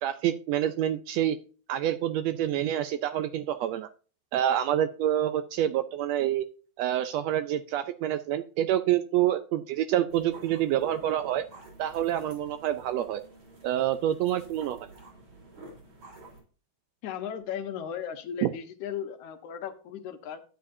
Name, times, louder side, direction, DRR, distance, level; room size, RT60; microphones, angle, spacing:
voice 1, 0.0-1.4 1.7-3.9 4.3-6.4 6.8-11.4 11.8-13.2 13.6-14.8 18.4-18.5, right 11 dB, 80° right, 11 dB, 1.6 m, -27 dB
sound 1, 10.1-16.4, right 2 dB, 55° right, 5.0 m, -50 dB
voice 2, 17.0-20.4, left 8 dB, 80° left, 8 dB, 2.4 m, -36 dB
11.5 x 9.1 x 2.7 m, 0.38 s
omnidirectional pair, 3.4 m